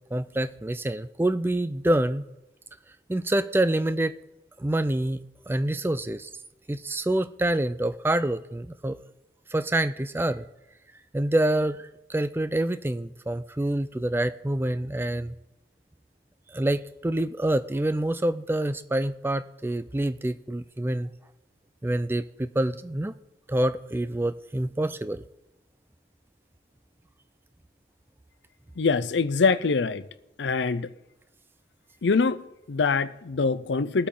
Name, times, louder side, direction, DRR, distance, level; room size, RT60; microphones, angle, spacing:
voice 1, 0.1-2.3 3.1-4.1 4.6-6.3 6.7-9.0 9.5-10.5 11.1-15.3 16.5-21.1 21.8-23.1 23.5-25.2, right 1 dB, 15° right, 0.4 m, -26 dB
voice 2, 28.8-30.0 30.4-30.9 32.0-34.1, left 4 dB, 90° left, 0.5 m, -24 dB
20.5 x 8.4 x 3.8 m
head